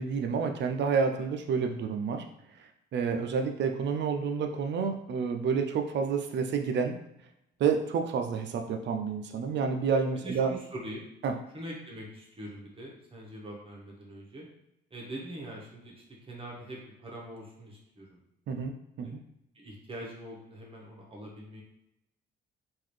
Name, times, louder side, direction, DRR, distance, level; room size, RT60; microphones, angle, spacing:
voice 1, 0.0-2.2 2.9-7.0 7.6-10.5 11.2-11.3 18.5-18.7 19.0-19.2, right 5 dB, 65° right, 5 dB, 0.5 m, -29 dB
voice 2, 10.2-11.1 11.5-14.5 14.9-18.2 18.5-18.6 19.0-19.1 19.5-21.6, right 1 dB, 30° right, -3 dB, 1.1 m, -43 dB
3.8 x 2.6 x 3.2 m, 0.82 s
cardioid pair, 90°, 20 cm